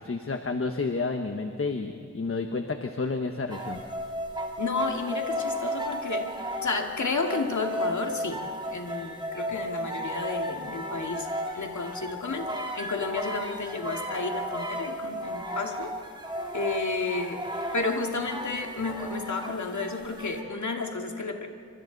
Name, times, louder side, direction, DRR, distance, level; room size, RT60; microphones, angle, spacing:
voice 1, 0.0-3.8, left 3 dB, 45° left, 5 dB, 1.2 m, -30 dB
sound 1, 3.5-20.4, equal, 15° right, 2.5 m, -34 dB
voice 2, 4.6-8.5 8.7-11.3 11.5-15.9 16.5-17.4 17.7-21.5, left 3 dB, 70° left, 2 dB, 2.3 m, -32 dB
28.0 x 25.0 x 4.1 m, 2.5 s
wide cardioid pair, 80°, 30 cm